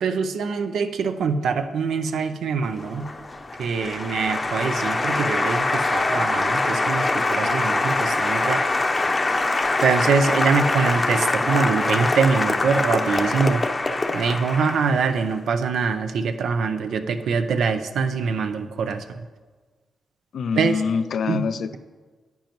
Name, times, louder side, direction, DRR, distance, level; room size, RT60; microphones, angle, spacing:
voice 1, 0.0-3.1 3.6-8.8 9.8-13.6 14.1-19.2 20.5-20.8 21.3-21.4, right 5 dB, 80° right, 8 dB, 0.6 m, -24 dB
Applause, 2.7-15.2, left 2 dB, 35° left, 0.7 m, -24 dB
voice 2, 20.3-21.8, left 6 dB, 70° left, 13 dB, 0.4 m, -25 dB
10.5 x 9.1 x 3.0 m, 1.4 s
cardioid pair, 60°, 0 cm